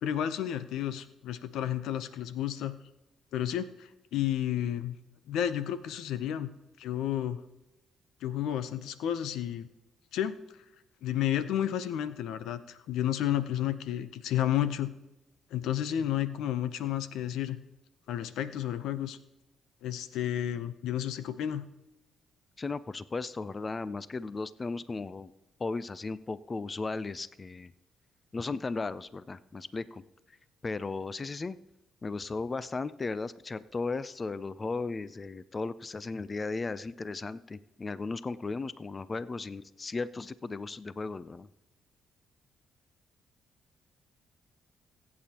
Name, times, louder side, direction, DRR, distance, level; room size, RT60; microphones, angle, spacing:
voice 1, 0.0-2.8 3.3-5.0 5.3-6.5 6.8-7.4 8.2-9.7 10.1-10.3 11.0-14.9 15.5-17.6 18.1-19.2 19.8-21.6, left 11 dB, 85° left, 13 dB, 0.7 m, -31 dB
voice 2, 22.6-25.3 25.6-27.7 28.3-30.4 30.6-31.6 32.0-41.5, left 3 dB, 30° left, 16 dB, 0.4 m, -36 dB
22.0 x 8.6 x 2.9 m, 1.0 s
cardioid pair, 90°, 0 cm